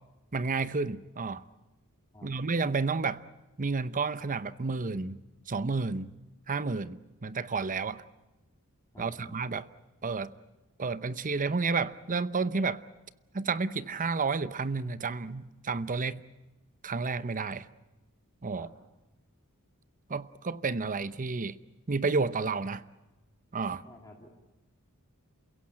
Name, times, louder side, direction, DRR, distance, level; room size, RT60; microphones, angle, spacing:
voice 1, 0.3-1.4 2.2-3.2 3.6-5.2 5.5-6.1 6.5-8.0 9.0-9.7 10.0-10.3 10.8-12.8 13.3-16.2 16.8-17.7 18.4-18.7 20.1-21.5 21.9-22.8 23.5-23.8, right 4 dB, 35° right, 0.8 m, -31 dB
voice 2, 8.9-9.3 18.5-18.7 23.8-24.4, left 1 dB, 15° left, 2.4 m, -51 dB
28.5 x 16.5 x 8.8 m
head